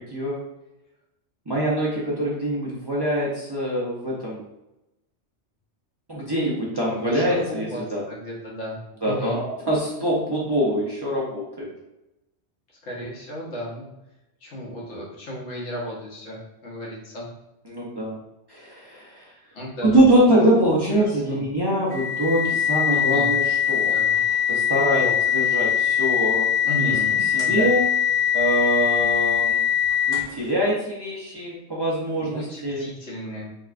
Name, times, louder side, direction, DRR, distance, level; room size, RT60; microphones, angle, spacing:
voice 1, 0.1-0.4 1.5-4.4 6.1-8.0 9.0-11.7 17.7-18.2 18.5-19.3 19.8-23.9 24.5-25.0 25.3-26.5 26.8-27.0 27.3-27.9 28.3-29.6 30.1-32.9, right 1 dB, 30° right, -6 dB, 0.5 m, -23 dB
voice 2, 6.9-7.8 8.1-9.4 12.7-13.9 14.4-17.3 19.5-20.0 21.0-21.4 22.9-23.4 23.6-24.2 24.9-25.1 26.7-27.7 32.2-33.5, equal, 85° left, -4 dB, 1.3 m, -34 dB
sound 1, 21.9-30.4, left 9 dB, 5° left, 0.9 m, -22 dB
3.7 x 2.2 x 2.4 m, 0.93 s
omnidirectional pair, 1.1 m